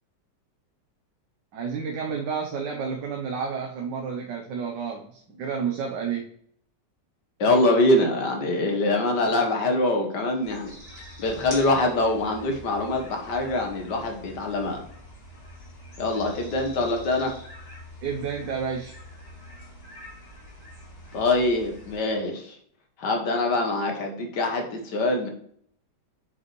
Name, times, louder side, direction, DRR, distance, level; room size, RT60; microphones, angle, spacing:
voice 1, 1.5-6.3 18.0-19.0, right 6 dB, 80° right, 1 dB, 1.5 m, -30 dB
voice 2, 7.4-10.7 11.2-14.8 16.0-17.3 21.1-22.6 23.0-25.3, left 2 dB, 70° left, 3 dB, 1.8 m, -24 dB
sound 1, 10.4-22.0, left 1 dB, 30° left, 2.9 m, -44 dB
8.5 x 5.3 x 3.1 m, 0.63 s
omnidirectional pair, 1.9 m